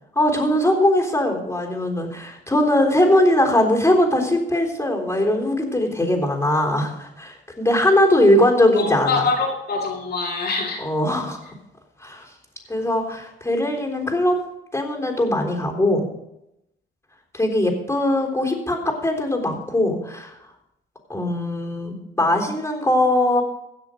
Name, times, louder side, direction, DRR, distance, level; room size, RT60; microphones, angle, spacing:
voice 1, 0.2-9.2 10.8-11.4 12.0-12.3 12.7-14.4 14.7-16.0 17.3-20.4 21.1-23.4, left 1 dB, 10° left, 1 dB, 3.6 m, -20 dB
voice 2, 8.7-10.8, left 4 dB, 55° left, -2 dB, 2.5 m, -24 dB
17.0 x 6.3 x 5.0 m, 0.84 s
cardioid pair, 90°, 20 cm